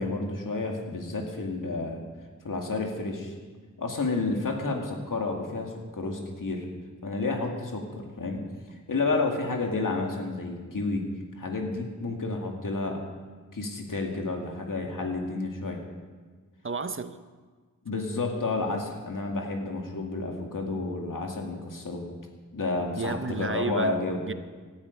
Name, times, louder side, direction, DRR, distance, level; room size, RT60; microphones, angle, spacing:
voice 1, 0.0-2.0 2.4-3.3 3.8-6.7 7.0-8.4 8.9-11.0 11.4-13.0 13.5-15.8 17.8-22.0 22.5-24.2, left 3 dB, 85° left, 1 dB, 2.2 m, -30 dB
voice 2, 16.6-17.2 23.0-23.9 24.2-24.3, right 4 dB, 40° right, 11 dB, 0.7 m, -31 dB
18.0 x 12.5 x 5.3 m, 1.4 s
wide cardioid pair, 80°, 32 cm